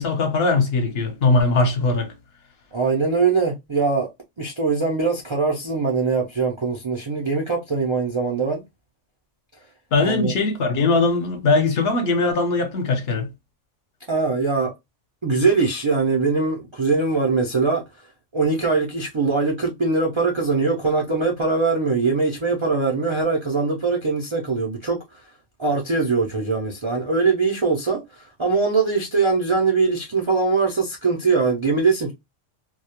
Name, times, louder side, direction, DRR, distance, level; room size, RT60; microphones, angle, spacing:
voice 1, 0.0-2.1 9.9-13.3, left 3 dB, 60° left, 0.8 m, -20 dB
voice 2, 2.7-4.1 4.4-8.6 10.0-10.3 14.1-14.7 15.2-17.8 18.3-25.2 25.6-32.1, right 4 dB, 55° right, 0.3 m, -22 dB
2.2 x 2.1 x 2.8 m
omnidirectional pair, 1.2 m